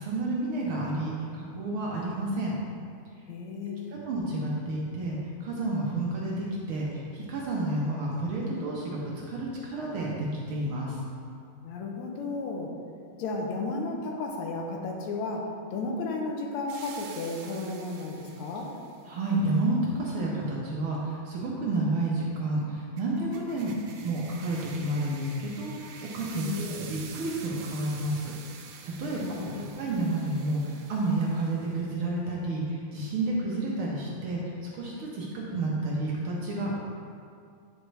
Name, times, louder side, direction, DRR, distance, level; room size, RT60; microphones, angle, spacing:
voice 1, 0.0-2.5 3.9-11.0 19.0-23.7 24.0-36.7, right 2 dB, 65° right, -4 dB, 1.3 m, -30 dB
voice 2, 3.3-4.0 11.6-12.7 13.2-18.7 26.4-26.7 29.0-29.7, left 3 dB, 80° left, 1 dB, 2.0 m, -34 dB
sound 1, 16.7-19.0 23.0-31.9, right 6 dB, 85° right, 2.0 m, -47 dB
9.1 x 5.0 x 3.3 m, 2.3 s
omnidirectional pair, 3.3 m